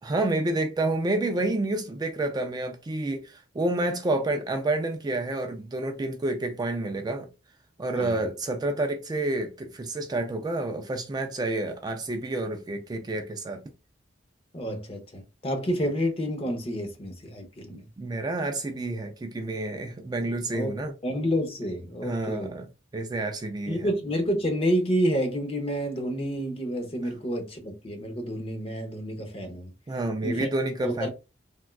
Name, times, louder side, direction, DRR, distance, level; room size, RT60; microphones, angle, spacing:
voice 1, 0.0-7.3 7.8-13.6 18.0-20.9 22.0-22.6 22.9-23.8 29.9-31.1, right 2 dB, 20° right, 0.3 m, -29 dB
voice 2, 14.5-17.9 20.5-20.7 21.0-22.5 23.7-29.7 30.2-30.5 30.8-31.1, equal, 30° left, 0.7 m, -29 dB
3.4 x 2.3 x 2.3 m
head